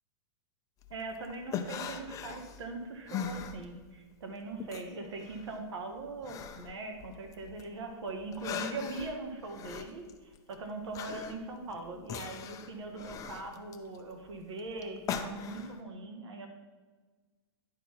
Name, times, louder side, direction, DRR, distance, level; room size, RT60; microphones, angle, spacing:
sound 1, 0.8-4.1 4.4-7.7 8.1-15.8, left 7 dB, 25° left, 0.5 m, -41 dB
voice 1, 0.9-16.5, right 3 dB, 85° right, 4 dB, 1.4 m, -41 dB
10.5 x 3.8 x 4.4 m, 1.4 s
hypercardioid pair, 135°, 14 cm